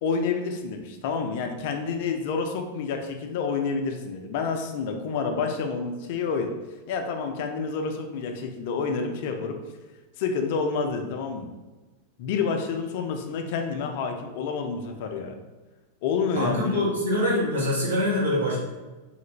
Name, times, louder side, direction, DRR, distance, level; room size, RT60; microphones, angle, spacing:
voice 1, 0.0-6.5 6.9-9.6 10.2-11.5 12.2-15.3 16.0-16.9, left 5 dB, 50° left, 5 dB, 0.4 m, -28 dB
voice 2, 16.4-18.6, left 1 dB, 70° right, -4 dB, 1.0 m, -24 dB
3.2 x 2.5 x 3.0 m, 1.2 s
figure-of-eight pair, 90°, 0 cm